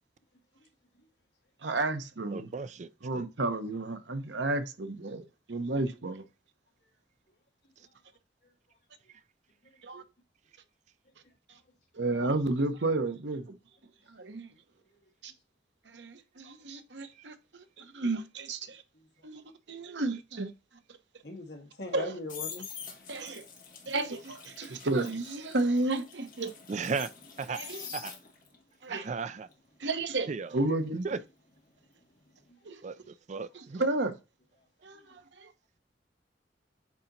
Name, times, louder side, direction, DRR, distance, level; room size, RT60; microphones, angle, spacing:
voice 1, 1.6-2.5 3.0-5.2 5.5-6.2 9.8-10.0 11.9-13.6 14.1-14.5 15.2-15.3 15.9-18.8 19.2-19.4 19.7-20.5 21.9-22.1 23.1-23.4 23.9-26.5 27.5-27.8 28.8-29.0 29.8-31.0 32.7-32.8 33.8-34.1 34.8-35.5, right 2 dB, 85° right, 0.9 m, -32 dB
voice 2, 2.3-2.9 3.1-3.2 26.7-27.1 27.4-27.6 27.9-28.1 28.9-29.5 30.3-30.6 31.0-31.2 32.8-33.8, right 5 dB, 40° right, 0.4 m, -35 dB
voice 3, 18.9-19.3 21.2-22.7 32.5-32.7 34.9-35.2, left 2 dB, 65° left, 1.8 m, -43 dB
sound 1, 21.9-28.6 28.9-31.8 32.1-32.4, left 7 dB, 50° left, 1.6 m, -46 dB
8.3 x 2.9 x 3.9 m
head